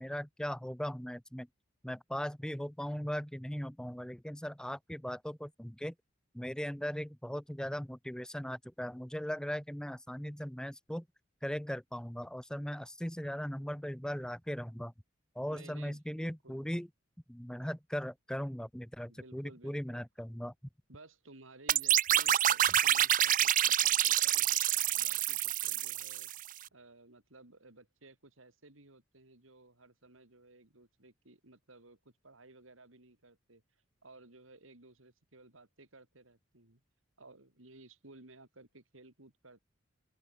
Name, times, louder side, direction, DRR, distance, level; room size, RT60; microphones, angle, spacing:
voice 1, 0.0-1.5 1.8-5.9 6.3-11.0 11.4-14.9 15.3-16.9 17.3-20.5, equal, 5° left, 1.1 m, -38 dB
voice 2, 15.5-16.6 19.1-20.0 20.9-33.6 34.0-36.8 37.2-39.6, right 2 dB, 85° right, 3.7 m, -57 dB
sound 1, 21.7-26.5, right 12 dB, 40° right, 0.6 m, -27 dB
open air
head